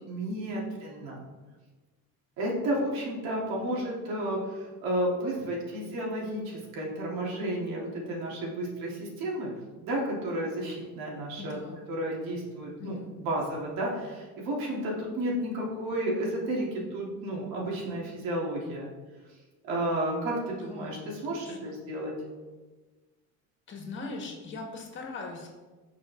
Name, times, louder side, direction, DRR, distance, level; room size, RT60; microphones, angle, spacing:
voice 1, 0.1-1.2 2.4-9.5 9.9-11.6 11.9-18.9 19.6-21.0 21.2-22.1, right 1 dB, 85° right, -3 dB, 3.8 m, -32 dB
voice 2, 11.4-11.8 12.8-13.1 20.5-21.8 23.7-25.5, left 3 dB, 35° left, 1 dB, 2.0 m, -41 dB
17.5 x 6.6 x 3.9 m, 1.3 s
cardioid pair, 180°, 34 cm